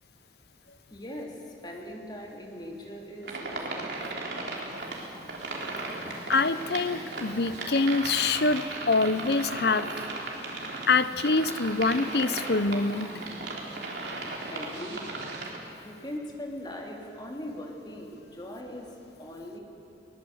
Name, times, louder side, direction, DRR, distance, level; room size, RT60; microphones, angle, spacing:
voice 1, 0.9-4.5 14.5-15.3 15.8-18.9 19.2-19.6, equal, 25° left, 0 dB, 3.0 m, -40 dB
sound 1, 3.2-15.6, right 2 dB, 70° right, 3.8 m, -36 dB
voice 2, 6.3-9.9 10.9-13.2, left 3 dB, 65° left, 13 dB, 0.8 m, -25 dB
22.5 x 19.5 x 8.0 m, 2.7 s
head